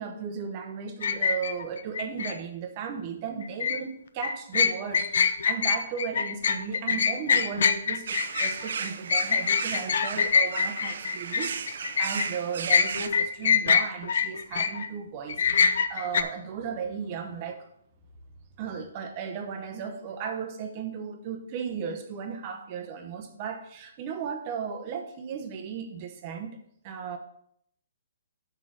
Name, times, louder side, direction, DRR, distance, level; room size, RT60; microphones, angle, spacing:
voice 1, 0.0-17.7 18.6-26.6 26.8-27.2, right 6 dB, 25° right, 6 dB, 0.8 m, -36 dB
sound 1, 1.0-2.3 3.4-3.8 4.2-12.3 12.7-14.9 15.3-16.2, left 6 dB, 55° left, 0.6 m, -24 dB
sound 2, 8.1-13.1, right 6 dB, 55° right, 0.6 m, -35 dB
6.0 x 5.6 x 6.3 m, 0.70 s
hypercardioid pair, 170°, 0 cm